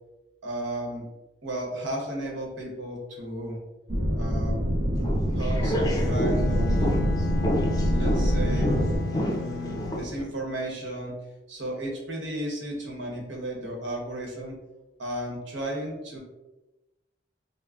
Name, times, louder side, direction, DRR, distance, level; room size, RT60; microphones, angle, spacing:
voice 1, 0.4-1.0 1.4-3.6 4.2-4.6 5.4-6.9 7.9-8.7 9.1-11.2 11.5-14.6 15.0-16.2, right 1 dB, 85° right, -1 dB, 1.0 m, -34 dB
sound 1, 3.9-9.0, equal, 30° right, 0.8 m, -25 dB
sound 2, 5.0-10.2, equal, 20° left, 0.5 m, -30 dB
Bowed string instrument, 5.9-10.2, left 4 dB, 90° left, 0.4 m, -35 dB
3.7 x 2.1 x 3.4 m, 1.0 s
head